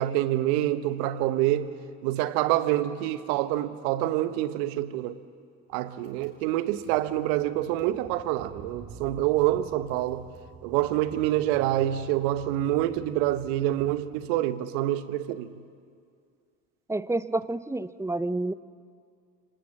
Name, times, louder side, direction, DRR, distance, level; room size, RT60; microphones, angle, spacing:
voice 1, 0.0-1.7 2.0-5.2 5.7-10.3 10.6-15.5, right 14 dB, 75° right, 1.1 m, -26 dB
Car / Engine, 6.0-14.4, right 5 dB, 55° right, 5.9 m, -49 dB
voice 2, 16.9-18.5, right 2 dB, 5° right, 0.6 m, -29 dB
25.0 x 19.5 x 7.3 m
hypercardioid pair, 60°, 44 cm